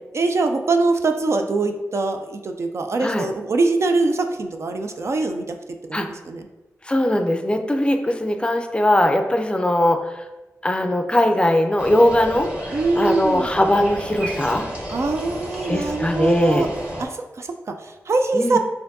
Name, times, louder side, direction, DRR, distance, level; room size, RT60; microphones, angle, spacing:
voice 1, 0.1-5.5 5.9-6.5 12.7-13.5 14.9-16.7 17.0-18.6, right 3 dB, 55° right, 6 dB, 0.3 m, -23 dB
voice 2, 6.9-10.0 10.6-12.5 13.0-14.7 15.7-16.7 18.3-18.6, left 1 dB, 20° left, 5 dB, 0.4 m, -20 dB
sound 1, 11.8-17.1, equal, 20° right, 0.9 m, -32 dB
4.3 x 2.6 x 2.6 m, 1.0 s
cardioid pair, 60°, 6 cm